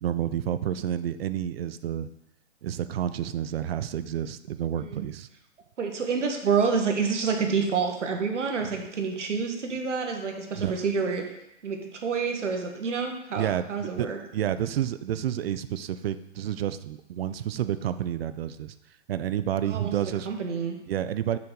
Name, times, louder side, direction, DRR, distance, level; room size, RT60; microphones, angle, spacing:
voice 1, 0.0-2.1 2.6-5.3 10.5-10.7 13.4-18.7 19.1-20.3 20.9-21.4, right 10 dB, 55° right, 13 dB, 0.5 m, -30 dB
voice 2, 5.8-11.2 11.6-14.2 19.6-20.8, right 5 dB, 80° right, 4 dB, 1.4 m, -28 dB
6.1 x 5.8 x 3.8 m, 0.83 s
hypercardioid pair, 140°, 36 cm